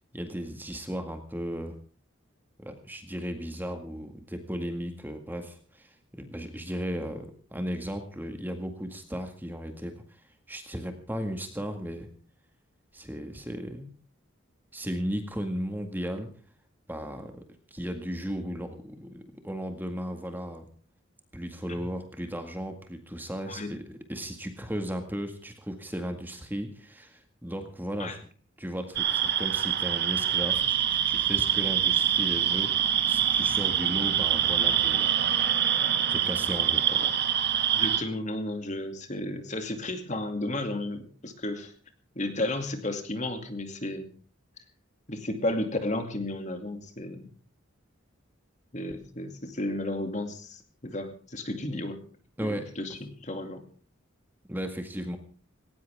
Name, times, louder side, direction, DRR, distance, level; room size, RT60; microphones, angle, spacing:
voice 1, 0.0-1.8 2.6-10.0 10.5-12.1 12.9-13.9 14.7-16.3 16.9-17.4 17.7-20.7 21.3-28.2 28.6-35.1 36.1-37.0 52.4-52.7 54.5-55.2, equal, 10° right, 6 dB, 1.9 m, -35 dB
sound 1, 29.0-38.0, right 9 dB, 55° right, 1.8 m, -25 dB
voice 2, 37.7-41.7 42.2-44.1 45.1-47.3 48.7-52.0 52.4-53.6, left 1 dB, 35° left, 7 dB, 2.5 m, -33 dB
19.0 x 18.0 x 3.6 m, 0.41 s
head